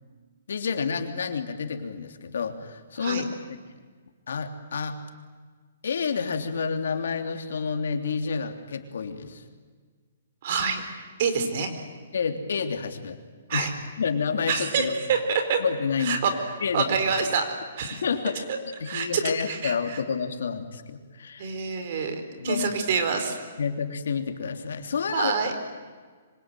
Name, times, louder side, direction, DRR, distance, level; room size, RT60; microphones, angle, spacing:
voice 1, 0.5-3.6 4.3-5.0 5.8-9.4 12.1-13.2 13.5-13.7 14.0-14.9 15.6-16.2 16.6-16.9 18.0-18.5 18.8-21.5 22.4-22.7 23.6-25.5, left 6 dB, 75° left, 6 dB, 3.3 m, -29 dB
voice 2, 10.4-10.8 11.2-11.7 13.5-13.7 14.5-15.6 16.0-17.4 17.8-18.0 18.5-18.6 18.9-19.2 19.5-20.0 21.4-23.4 25.1-25.5, right 6 dB, 45° right, 7 dB, 4.3 m, -27 dB
25.5 x 25.5 x 9.3 m, 1.5 s
hypercardioid pair, 165°, 0 cm